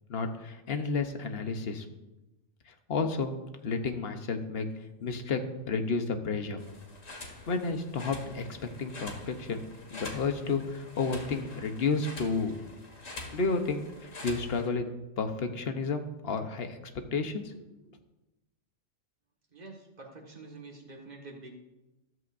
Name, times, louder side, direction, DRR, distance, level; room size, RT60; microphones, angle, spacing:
voice 1, 0.1-1.9 2.7-3.3 3.6-4.7 5.0-5.4 5.7-6.6 7.2-9.6 9.9-12.6 13.3-14.9 15.2-16.8 17.1-17.6, left 4 dB, 55° left, 6 dB, 1.2 m, -31 dB
sound 1, 6.6-14.7, left 2 dB, 90° left, 2.2 m, -45 dB
voice 2, 19.5-21.6, right 2 dB, 35° right, -1 dB, 1.9 m, -47 dB
14.0 x 13.0 x 2.6 m, 1.0 s
omnidirectional pair, 1.3 m